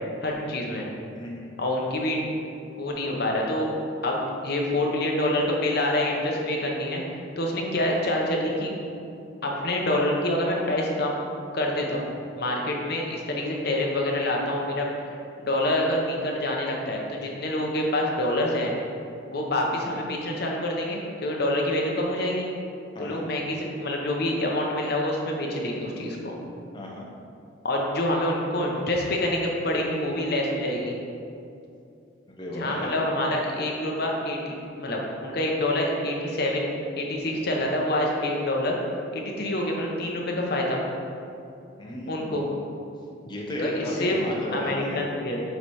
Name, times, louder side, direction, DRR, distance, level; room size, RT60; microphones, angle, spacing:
voice 1, 0.2-0.9 1.6-2.3 2.8-3.7 4.0-7.0 7.4-8.8 9.4-11.1 11.5-12.1 12.4-15.1 15.4-18.7 19.3-22.5 23.0-26.4 27.6-30.9 32.5-36.7 37.0-38.8 39.1-40.8 42.1-42.5 43.6-44.2 44.5-45.4, left 1 dB, 50° left, -1 dB, 0.9 m, -26 dB
voice 2, 1.1-1.5 22.9-23.2 26.7-27.1 32.3-32.9 41.8-42.5 43.2-45.0, left 1 dB, 25° left, -3 dB, 0.6 m, -34 dB
8.1 x 3.2 x 4.3 m, 2.6 s
head